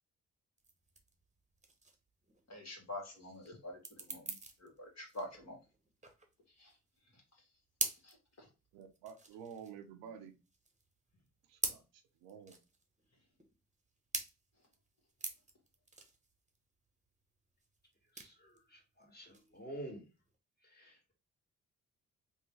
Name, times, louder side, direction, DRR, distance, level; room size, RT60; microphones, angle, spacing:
sound 1, 0.6-20.4, right 3 dB, 20° right, 1.0 m, -45 dB
voice 1, 2.5-4.3 4.6-5.6 6.6-6.7 8.0-8.5, left 1 dB, 50° left, 1.7 m, -47 dB
voice 2, 8.7-10.3 11.5-11.8 12.2-12.6, right 7 dB, 85° right, 0.6 m, -50 dB
voice 3, 18.1-20.1 20.6-21.1, right 1 dB, 25° left, 1.9 m, -49 dB
3.5 x 2.4 x 3.1 m
hypercardioid pair, 45°, 34 cm